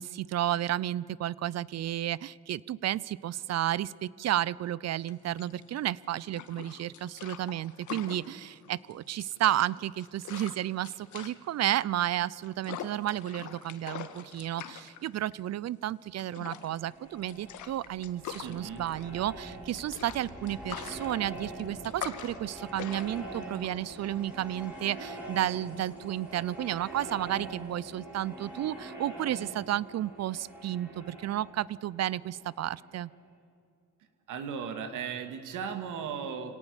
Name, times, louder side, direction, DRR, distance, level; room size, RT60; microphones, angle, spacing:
voice 1, 0.0-33.1, right 13 dB, 60° right, 22 dB, 0.6 m, -32 dB
sound 1, 5.0-24.7, left 9 dB, 75° left, 1.5 m, -44 dB
sound 2, 16.6-33.2, right 1 dB, 5° right, 6.0 m, -44 dB
voice 2, 18.4-18.8 34.3-36.5, right 7 dB, 85° right, 7 dB, 2.3 m, -36 dB
25.5 x 18.0 x 7.2 m, 2.3 s
cardioid pair, 90°, 30 cm